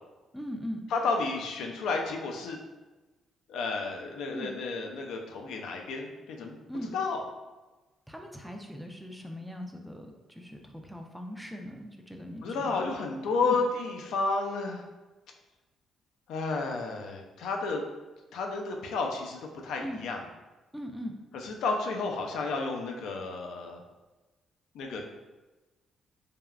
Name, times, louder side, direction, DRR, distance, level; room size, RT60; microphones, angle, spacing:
voice 1, 0.3-0.8 4.3-4.5 6.7-6.9 8.1-12.9 13.4-13.6 19.8-20.0 20.7-21.2, equal, ahead, 2 dB, 0.3 m, -40 dB
voice 2, 0.9-2.6 3.5-6.6 6.9-7.2 12.4-14.8 16.3-17.8 18.3-20.2 21.3-23.8 24.7-25.1, left 3 dB, 80° left, 2 dB, 0.4 m, -31 dB
3.3 x 2.2 x 2.3 m, 1.2 s
cardioid pair, 90°, 0 cm